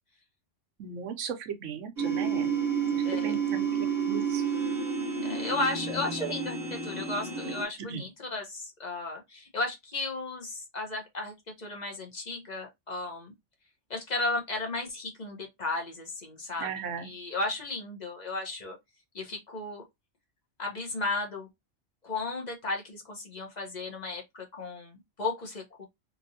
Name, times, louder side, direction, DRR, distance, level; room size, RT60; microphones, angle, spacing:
voice 1, 0.8-2.5 2.9-3.7 4.1-4.4 6.2-6.3 7.9-8.0 16.6-17.1, right 7 dB, 85° right, 1.0 m, -37 dB
sound 1, 2.0-7.7, right 6 dB, 40° right, 0.9 m, -30 dB
voice 2, 3.0-3.4 5.2-13.3 13.9-16.7 17.0-18.8 19.1-19.8 20.6-21.5 22.0-25.8, left 2 dB, 40° left, 1.0 m, -34 dB
3.0 x 2.6 x 2.6 m
omnidirectional pair, 1.2 m